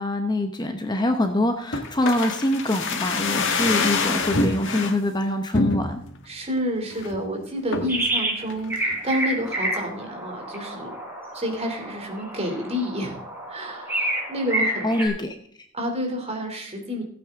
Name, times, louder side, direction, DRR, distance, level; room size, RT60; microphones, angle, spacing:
voice 1, 0.0-6.0 14.8-15.3, left 1 dB, 20° left, 6 dB, 1.0 m, -24 dB
sound 1, 1.7-5.0 5.5-6.2 6.6-6.7 6.9-7.2 7.7-8.0 8.5-9.2 9.5-9.6, left 3 dB, 65° left, 1.7 m, -26 dB
voice 2, 6.2-11.0 11.3-13.2 13.5-14.9 15.7-17.0, equal, 30° right, 2 dB, 3.0 m, -29 dB
sound 2, 7.9-8.4 8.7-15.1, right 1 dB, 10° right, 4.3 m, -29 dB
16.5 x 8.9 x 3.7 m, 0.62 s
head